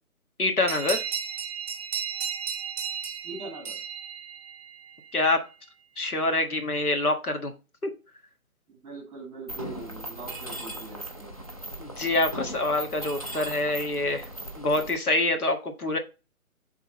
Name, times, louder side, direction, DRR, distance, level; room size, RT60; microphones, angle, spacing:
voice 1, 0.4-1.0 5.1-5.5 6.0-7.5 7.8-7.9 11.8-14.3 14.6-16.0, left 2 dB, 85° left, 5 dB, 1.5 m, -26 dB
sound 1, 0.7-4.9, right 7 dB, 25° right, 0.8 m, -34 dB
voice 2, 3.2-3.8 8.7-11.3, right 2 dB, 10° right, -1 dB, 1.3 m, -42 dB
Mechanisms, 9.5-15.0, right 1 dB, 25° left, 0.4 m, -38 dB
7.6 x 3.6 x 4.1 m, 0.30 s
figure-of-eight pair, 150°, 43 cm